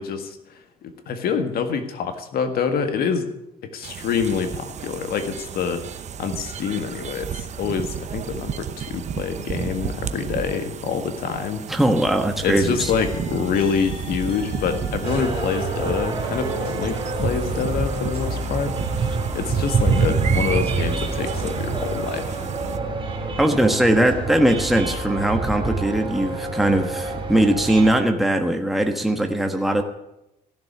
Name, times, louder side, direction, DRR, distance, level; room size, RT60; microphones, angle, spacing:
voice 1, 0.0-3.3 3.6-5.9 6.2-11.7 12.4-18.8 19.3-22.5, left 6 dB, 70° left, 8 dB, 1.8 m, -26 dB
sound 1, 3.8-22.8, right 8 dB, 45° right, 0.8 m, -33 dB
voice 2, 11.7-12.9 23.4-29.8, right 1 dB, ahead, 4 dB, 1.3 m, -20 dB
sound 2, 12.8-16.9 17.2-18.2, left 1 dB, 35° left, 3.1 m, -35 dB
sound 3, 15.0-28.0, right 4 dB, 30° right, 3.8 m, -26 dB
15.5 x 7.2 x 9.6 m, 0.88 s
cardioid pair, 125°, 16 cm